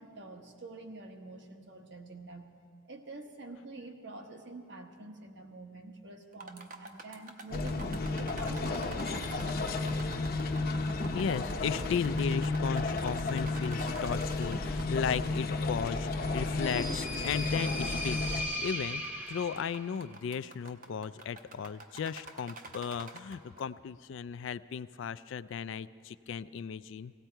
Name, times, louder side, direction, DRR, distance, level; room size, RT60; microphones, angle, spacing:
voice 1, 0.0-2.6 2.8-10.1, right 2 dB, 55° right, 4 dB, 1.2 m, -47 dB
sound 1, 6.3-15.4 15.7-15.8 16.5-16.6 17.2-17.3 18.4-18.7 19.0-19.3 19.6-23.6, right 3 dB, 40° right, 0.9 m, -47 dB
sound 2, 7.5-18.4, left 3 dB, 45° left, 0.7 m, -32 dB
voice 2, 11.1-19.0 19.3-27.1, left 7 dB, 60° left, 15 dB, 0.3 m, -36 dB
sound 3, 16.2-20.0, equal, 10° right, 0.8 m, -38 dB
17.5 x 17.0 x 4.5 m, 2.4 s
head